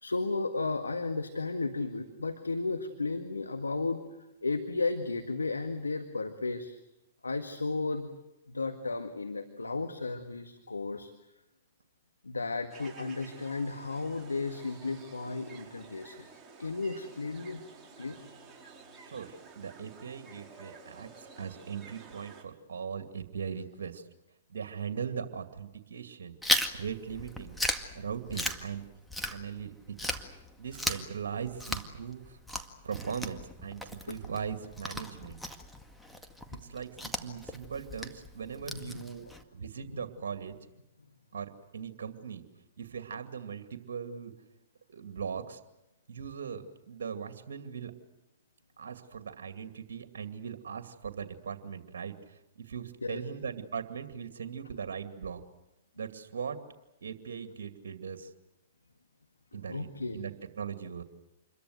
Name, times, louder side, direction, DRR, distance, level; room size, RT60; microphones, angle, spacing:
voice 1, 0.0-4.0 4.4-6.8 7.2-8.1 8.5-11.1 12.2-16.2 16.6-17.6 18.0-18.2 38.7-39.0 39.9-40.0 53.0-53.2 59.7-60.2, left 3 dB, 90° left, 7 dB, 1.8 m, -34 dB
sound 1, 12.7-22.4, right 4 dB, 15° right, 5.6 m, -52 dB
voice 2, 19.0-24.1 24.5-26.4 26.7-27.6 27.9-28.8 29.3-30.2 30.6-32.4 32.8-35.4 36.5-40.6 41.3-42.4 42.8-44.3 44.9-45.6 46.1-47.9 48.8-55.4 56.0-56.6 57.0-58.3 59.5-61.0, right 7 dB, 70° right, 8 dB, 2.4 m, -39 dB
Chewing mastication, 26.4-29.7 30.0-39.4, left 1 dB, 5° left, 2.0 m, -36 dB
27.5 x 22.5 x 8.0 m, 0.90 s
hypercardioid pair, 115°, 0 cm